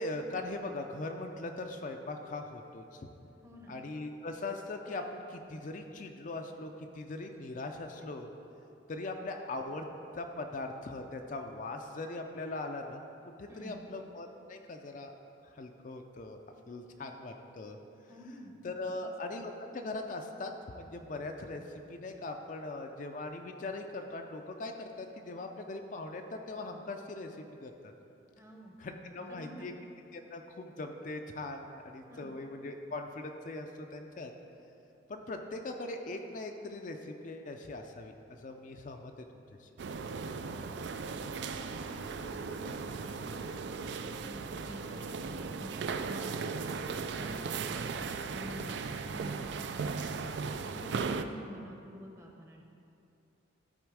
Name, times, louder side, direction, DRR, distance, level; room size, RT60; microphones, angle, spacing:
voice 1, 0.0-3.1 3.7-8.3 8.9-9.9 10.1-13.0 13.4-15.2 15.4-16.4 16.7-17.8 18.6-27.9 28.8-29.7 30.1-34.3 35.1-39.1 39.6-39.7, left 2 dB, 40° left, 4 dB, 0.4 m, -40 dB
voice 2, 3.4-3.8 13.5-13.9 18.1-18.6 18.8-19.0 28.4-28.8 29.2-29.7 32.1-32.4 41.0-52.6, equal, 15° right, 0 dB, 0.8 m, -50 dB
sound 1, 39.8-51.2, right 5 dB, 60° right, 0.3 m, -37 dB
12.5 x 4.3 x 4.7 m, 2.7 s
head